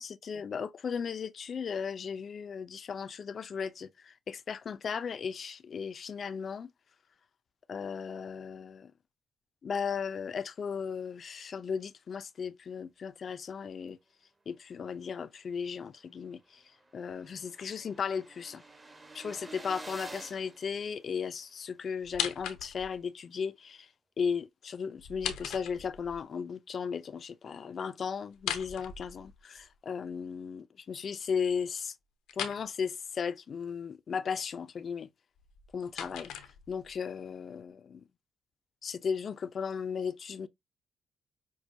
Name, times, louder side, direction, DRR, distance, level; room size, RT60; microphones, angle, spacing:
voice 1, 0.0-6.7 7.7-8.9 9.6-14.0 14.5-16.6 16.9-18.6 19.1-23.9 24.2-31.9 32.4-35.1 35.7-36.3 36.7-38.0 38.8-40.5, left 6 dB, 50° left, 0.5 m, -36 dB
sound 1, 15.9-16.0 16.4-16.5 16.6-21.5, right 2 dB, 20° right, 1.0 m, -49 dB
sound 2, 22.0-23.0 25.0-26.2 28.3-29.6 32.3-32.6 35.4-37.0, left 9 dB, 90° left, 0.8 m, -38 dB
6.0 x 2.3 x 2.7 m
cardioid pair, 90°, 0 cm